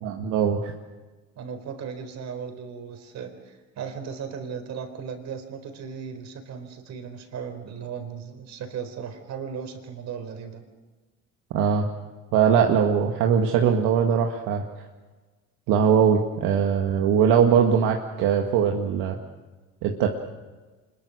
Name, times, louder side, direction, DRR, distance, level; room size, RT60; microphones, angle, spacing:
voice 1, 0.0-0.7 11.5-11.9 12.3-14.6 15.7-19.2 19.8-20.1, right 7 dB, 75° right, 2 dB, 2.0 m, -21 dB
voice 2, 1.4-10.6, right 7 dB, 55° right, 7 dB, 4.5 m, -36 dB
25.5 x 22.0 x 6.4 m, 1.3 s
cardioid pair, 110°, 33 cm